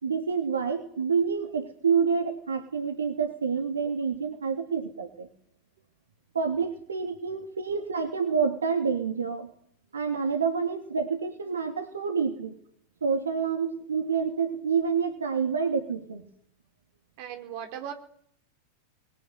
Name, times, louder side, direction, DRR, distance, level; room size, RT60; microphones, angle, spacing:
voice 1, 0.0-5.3 6.3-9.5 9.9-12.5 13.0-16.3, right 6 dB, 70° right, 6 dB, 2.8 m, -28 dB
voice 2, 17.2-17.9, right 10 dB, 45° right, 6 dB, 4.2 m, -38 dB
24.5 x 22.0 x 9.6 m, 0.66 s
figure-of-eight pair, 90°, 0 cm